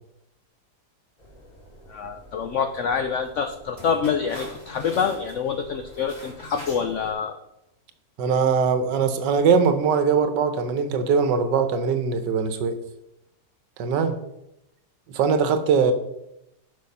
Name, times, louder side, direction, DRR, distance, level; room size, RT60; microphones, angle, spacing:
sound 1, 1.2-7.1, left 1 dB, 25° left, 1.8 m, -44 dB
voice 1, 1.9-7.4, left 6 dB, 80° left, 7 dB, 0.6 m, -26 dB
voice 2, 8.2-12.8 13.8-14.2 15.1-15.9, right 6 dB, 85° right, 9 dB, 1.5 m, -21 dB
6.6 x 5.7 x 5.3 m, 0.85 s
omnidirectional pair, 1.9 m